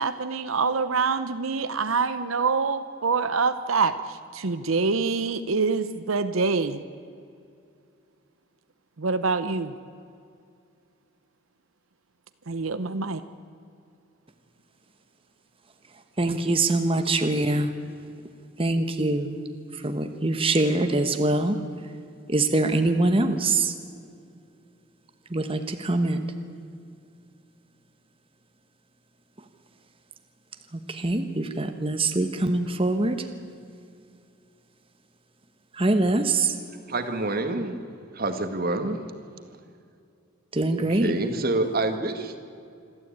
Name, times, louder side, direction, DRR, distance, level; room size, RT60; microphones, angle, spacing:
voice 1, 0.0-6.8 9.0-9.7 12.5-13.2, right 4 dB, 85° right, 11 dB, 0.8 m, -25 dB
voice 2, 16.2-17.7 18.6-19.4 19.7-21.6 22.3-23.7 25.3-26.2 30.7-33.3 35.7-36.6 40.5-41.1, right 2 dB, 25° right, 7 dB, 1.2 m, -24 dB
voice 3, 36.9-37.8 38.1-39.0 40.8-42.4, right 2 dB, 45° right, 7 dB, 1.8 m, -27 dB
26.5 x 13.0 x 8.8 m, 2.4 s
head